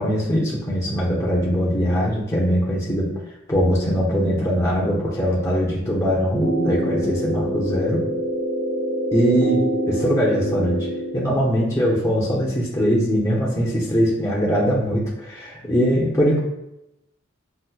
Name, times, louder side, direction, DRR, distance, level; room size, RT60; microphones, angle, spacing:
voice 1, 0.0-3.1 3.5-8.0 9.1-10.9 11.1-16.4, equal, 15° left, -5 dB, 0.6 m, -21 dB
sound 1, 6.3-11.3, right 1 dB, 45° right, 0.8 m, -25 dB
5.5 x 2.0 x 2.2 m, 0.87 s
head